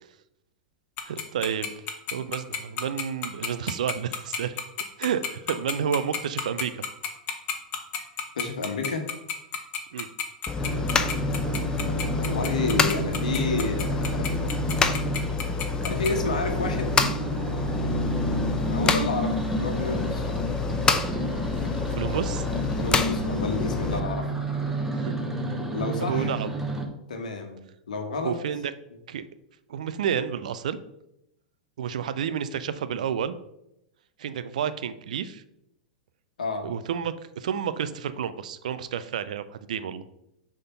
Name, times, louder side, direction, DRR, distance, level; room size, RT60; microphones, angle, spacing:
Tick-tock, 1.0-16.1, left 8 dB, 40° left, 1.2 m, -30 dB
voice 1, 1.0-1.7 2.1-4.6 5.0-6.8 8.0-8.1 9.9-10.1 21.9-22.5 24.9-25.1 25.5-25.6 26.0-26.5 28.2-28.6 29.1-29.2 29.7-30.8 31.8-33.3 34.2-35.4 36.6-40.0, right 8 dB, 70° right, 12 dB, 0.5 m, -30 dB
voice 2, 8.3-9.0 12.2-14.3 15.8-17.0 18.7-20.3 22.8-24.3 25.7-26.3 27.1-27.6 27.9-28.3 36.4-36.7, left 3 dB, 75° left, 5 dB, 1.4 m, -30 dB
sound 1, 10.5-24.0, left 5 dB, 20° left, 0.6 m, -28 dB
sound 2, 10.6-26.9, right 1 dB, 10° right, 1.2 m, -31 dB
6.6 x 3.7 x 5.7 m, 0.82 s
hypercardioid pair, 95°, 4 cm